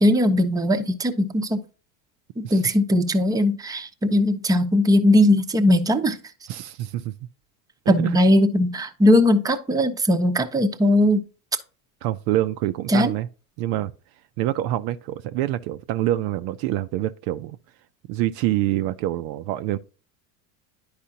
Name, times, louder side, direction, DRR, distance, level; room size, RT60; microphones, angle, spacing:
voice 1, 0.0-1.6 2.4-6.2 7.9-11.2 12.9-13.1, left 1 dB, 10° right, 0.7 m, -19 dB
voice 2, 6.5-7.1 7.9-8.2 12.0-13.3 13.6-13.9 14.4-17.6 18.1-19.8, right 14 dB, 55° right, 0.5 m, -26 dB
10.5 x 4.8 x 2.7 m
supercardioid pair, 100°, 45 cm